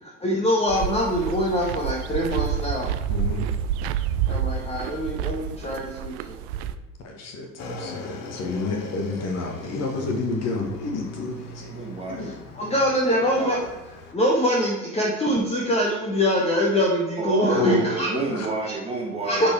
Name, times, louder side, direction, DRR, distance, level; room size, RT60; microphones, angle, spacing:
voice 1, 0.0-2.9 4.3-6.4 12.5-13.8 14.1-18.1 19.2-19.5, equal, 15° left, -2 dB, 1.4 m, -24 dB
sound 1, 0.7-6.8, right 8 dB, 45° right, 0.6 m, -28 dB
voice 2, 3.1-3.4 6.7-6.8 7.0-11.7 12.1-12.4 17.5-17.9 18.1-18.5, left 3 dB, 35° left, 3 dB, 1.5 m, -29 dB
Motorcycle / Engine, 7.6-14.1, left 2 dB, 55° left, 1.5 m, -40 dB
voice 3, 11.7-12.3 17.2-19.5, right 4 dB, 15° right, -1 dB, 2.0 m, -29 dB
10.0 x 4.6 x 4.6 m, 1.0 s
figure-of-eight pair, 75°, 44 cm